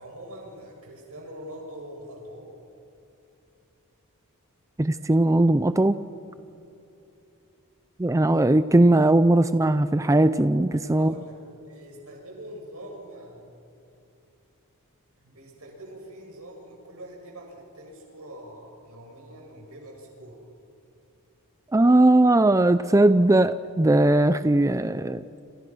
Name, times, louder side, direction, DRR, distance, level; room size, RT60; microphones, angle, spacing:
voice 1, 0.0-2.5 9.4-9.8 10.9-11.3 11.7-13.4 15.2-20.4, right 1 dB, 75° right, 0 dB, 8.0 m, -43 dB
voice 2, 4.8-6.0 8.0-11.1 21.7-25.2, right 1 dB, 15° right, 12 dB, 0.5 m, -19 dB
29.5 x 28.0 x 6.2 m, 2.9 s
head